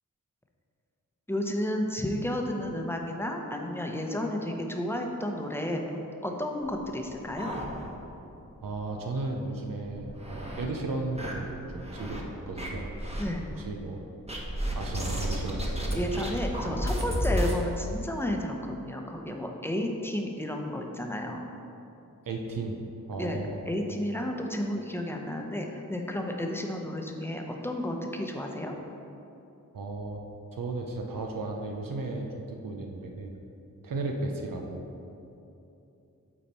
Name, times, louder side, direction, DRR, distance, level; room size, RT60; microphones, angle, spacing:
voice 1, 1.3-5.8 6.2-7.6 13.2-13.4 15.9-21.5 23.2-23.4 23.7-28.7, left 1 dB, 5° left, 2 dB, 0.8 m, -32 dB
sound 1, 6.7-8.2 8.6-8.7 9.0-9.1 9.7-10.7 11.2-12.2 12.6-13.2 14.3-17.6, equal, 20° right, 1.2 m, -32 dB
voice 2, 8.6-12.9 13.5-14.0 14.7-16.0 22.3-22.8 23.1-23.6 29.7-30.2 30.5-33.3 33.8-34.9, right 2 dB, 75° right, 2 dB, 0.7 m, -35 dB
8.6 x 4.2 x 4.4 m, 2.8 s
cardioid pair, 55°, 33 cm